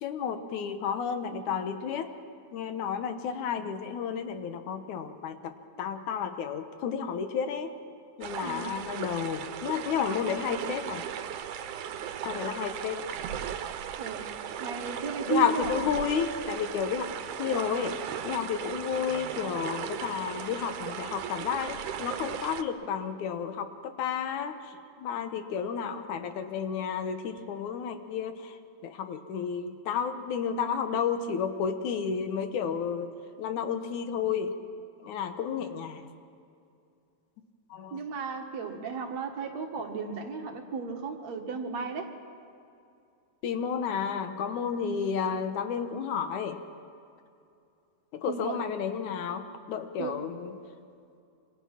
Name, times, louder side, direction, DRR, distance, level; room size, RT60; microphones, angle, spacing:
voice 1, 0.0-2.1 2.5-7.7 8.2-11.0 12.2-13.0 15.3-17.1 17.4-18.0 18.2-33.1 33.4-34.5 35.0-36.1 37.7-38.0 43.4-46.6 48.1-50.5, left 7 dB, 80° left, 8 dB, 2.6 m, -32 dB
sound 1, 8.2-22.6, right 9 dB, 85° right, 2.5 m, -37 dB
voice 2, 8.4-8.7 14.0-14.3 14.6-15.7 37.9-42.1 48.3-48.6 50.0-50.2, right 5 dB, 65° right, 3 dB, 2.8 m, -34 dB
27.5 x 25.5 x 5.9 m, 2.6 s
omnidirectional pair, 3.4 m